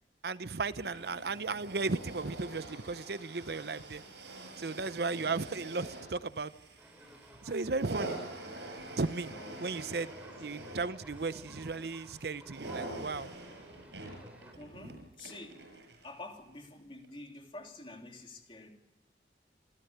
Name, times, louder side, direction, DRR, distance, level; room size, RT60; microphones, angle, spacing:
voice 1, 0.2-4.0 4.6-6.5 7.4-8.2 9.0-10.1 10.4-13.3 14.7-15.0, right 3 dB, 70° right, 14 dB, 0.7 m, -35 dB
sound 1, 0.7-16.2 17.0-17.1, right 2 dB, 85° right, 7.6 m, -45 dB
voice 2, 5.1-5.4 7.5-7.7 9.3-9.7 14.5-15.6 16.0-18.7, left 2 dB, 30° left, 2 dB, 3.2 m, -48 dB
sound 2, 6.8-14.5, right 1 dB, 10° right, 4.0 m, -56 dB
28.0 x 14.0 x 8.1 m, 0.97 s
head